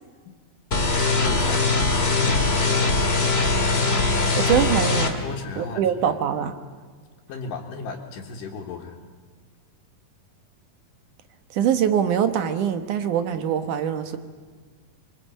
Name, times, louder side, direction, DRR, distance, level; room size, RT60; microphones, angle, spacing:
sound 1, 0.7-5.1, left 3 dB, 25° left, 1.6 m, -21 dB
voice 1, 1.2-1.6 2.3-2.9 5.2-6.2 7.3-9.0, left 4 dB, 75° left, -2 dB, 3.2 m, -35 dB
voice 2, 4.4-5.2 5.6-6.6 11.5-14.2, right 9 dB, 70° right, 9 dB, 2.6 m, -23 dB
26.0 x 23.0 x 8.5 m, 1.5 s
omnidirectional pair, 3.9 m